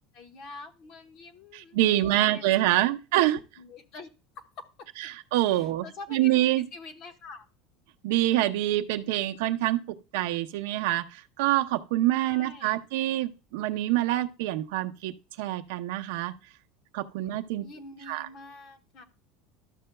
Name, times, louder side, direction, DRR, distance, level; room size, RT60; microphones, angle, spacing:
voice 1, 0.1-1.8 2.1-2.8 3.3-4.1 4.3-5.1 5.5-7.5 12.2-12.8 17.6-19.0, left 3 dB, 40° left, 1.0 m, -46 dB
voice 2, 1.5-3.4 5.1-5.9 6.1-6.6 8.0-16.3 16.9-17.7 18.1-18.3, right 15 dB, 70° right, 0.6 m, -26 dB
12.5 x 6.6 x 2.2 m
cardioid pair, 180°, 0 cm